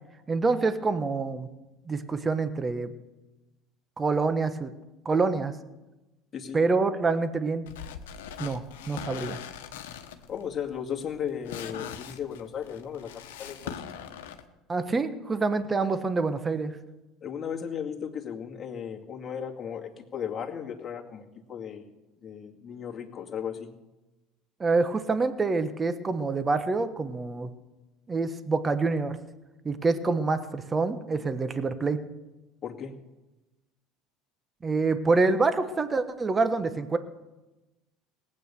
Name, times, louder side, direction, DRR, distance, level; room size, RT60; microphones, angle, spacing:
voice 1, 0.3-1.5 1.9-2.9 4.0-4.7 5.0-5.5 6.5-7.7 8.4-9.4 14.7-16.8 24.6-27.5 28.1-29.2 29.6-32.0 34.6-37.0, right 3 dB, 25° right, 10 dB, 1.2 m, -26 dB
sound 1, 7.7-14.4, left 9 dB, 80° left, 1.1 m, -41 dB
voice 2, 10.3-13.1 13.4-13.8 17.2-21.9 22.2-23.7 32.6-32.9, left 8 dB, 35° left, 1 dB, 2.2 m, -35 dB
18.5 x 8.7 x 6.9 m, 1.1 s
hypercardioid pair, 80°, 0 cm